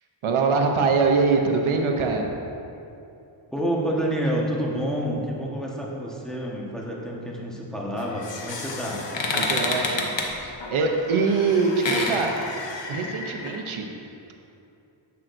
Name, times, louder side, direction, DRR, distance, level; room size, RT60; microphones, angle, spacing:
voice 1, 0.2-2.4 9.3-12.4 12.9-13.9, right 4 dB, 80° right, 3 dB, 0.9 m, -23 dB
voice 2, 3.5-9.0, equal, ahead, -4 dB, 1.3 m, -28 dB
sound 1, 8.0-13.6, left 3 dB, 65° left, 1.1 m, -30 dB
10.5 x 7.6 x 2.6 m, 2.7 s
wide cardioid pair, 95°, 48 cm